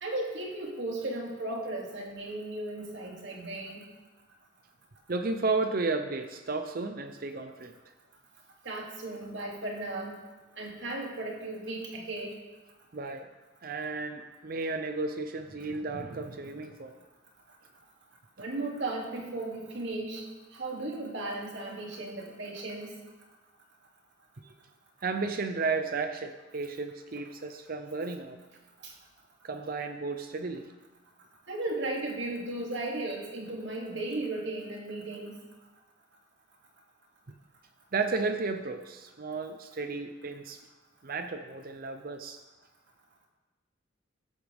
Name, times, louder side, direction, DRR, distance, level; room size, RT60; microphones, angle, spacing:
voice 1, 0.0-3.8 8.6-10.2 10.6-12.4 18.4-20.2 20.5-22.9 28.8-28.9 31.5-35.4, right 2 dB, 70° right, -1 dB, 2.7 m, -35 dB
voice 2, 5.1-7.7 12.9-13.3 13.6-17.0 24.4-24.5 25.0-28.4 29.4-30.7 37.9-40.6 41.0-42.4, right 3 dB, 50° right, 7 dB, 0.6 m, -33 dB
15.0 x 11.5 x 3.5 m, 1.2 s
head